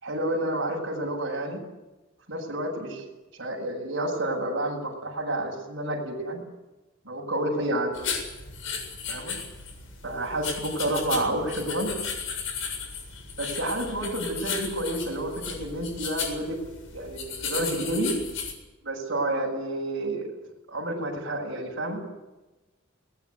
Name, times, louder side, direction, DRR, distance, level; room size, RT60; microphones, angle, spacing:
voice 1, 0.0-1.6 2.3-3.0 3.4-6.4 7.0-7.9 9.1-9.4 10.0-11.9 13.4-16.6 16.9-18.2 18.8-20.3 20.7-22.0, right 1 dB, 60° right, -2 dB, 7.4 m, -29 dB
sound 1, 7.9-18.5, left 5 dB, 75° left, 7.5 m, -35 dB
23.0 x 20.0 x 9.7 m, 1.1 s
head